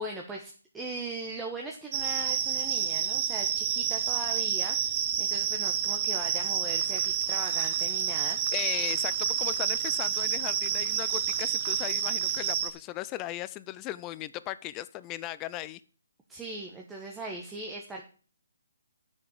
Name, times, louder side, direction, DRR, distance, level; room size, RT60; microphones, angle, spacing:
voice 1, 0.0-8.4 16.3-18.0, right 2 dB, 10° right, 0 dB, 1.1 m, -39 dB
sound 1, 1.9-12.7, right 9 dB, 30° right, 1.0 m, -29 dB
sound 2, 6.8-12.5, right 5 dB, 60° right, 1.4 m, -47 dB
voice 2, 8.5-15.8, left 15 dB, 20° left, 16 dB, 0.5 m, -37 dB
8.3 x 6.4 x 7.2 m, 0.40 s
hypercardioid pair, 155°, 0 cm